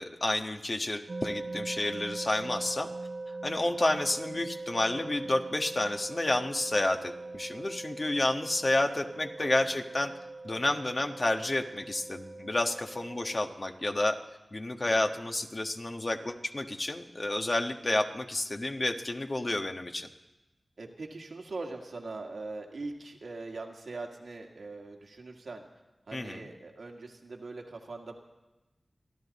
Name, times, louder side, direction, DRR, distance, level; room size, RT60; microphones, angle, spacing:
voice 1, 0.0-2.9 3.4-10.1 10.4-14.2 14.5-20.1 26.1-26.5, left 2 dB, 45° left, 4 dB, 1.4 m, -30 dB
sound 1, 1.1-13.4, right 3 dB, 65° right, 0.9 m, -41 dB
voice 2, 14.7-15.1 20.8-25.6 26.1-28.1, right 3 dB, 85° right, 1 dB, 1.9 m, -42 dB
29.5 x 11.0 x 4.2 m, 1.0 s
cardioid pair, 45°, 0 cm